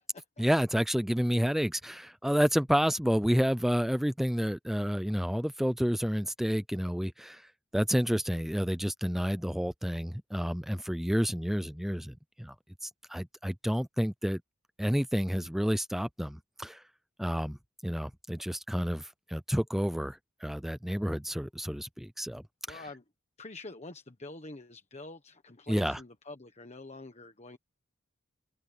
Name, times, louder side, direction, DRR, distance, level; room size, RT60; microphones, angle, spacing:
voice 1, 0.4-12.5 12.8-14.4 14.8-16.8 17.2-17.6 17.8-22.8 25.7-26.0, equal, ahead, 0.4 m, -30 dB
voice 2, 22.7-23.0 23.4-27.6, left 2 dB, 30° left, 1.3 m, -46 dB
open air
head